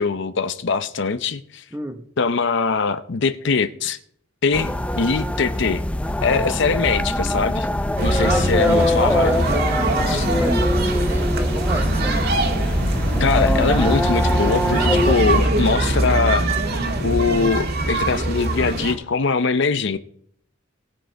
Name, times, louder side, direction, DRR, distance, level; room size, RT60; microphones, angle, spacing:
voice 1, 0.0-1.6 2.2-4.0 4.4-5.8 6.2-7.7 8.0-9.3 10.1-10.3 13.2-16.5 17.0-20.0, left 4 dB, 65° left, 0.6 m, -22 dB
voice 2, 1.7-2.1 8.2-9.7 10.4-12.4, right 1 dB, 10° right, 1.0 m, -29 dB
sound 1, 4.5-15.1, left 1 dB, 5° left, 0.4 m, -23 dB
sound 2, 8.0-18.9, right 1 dB, 55° right, 1.6 m, -22 dB
19.0 x 6.4 x 4.5 m
head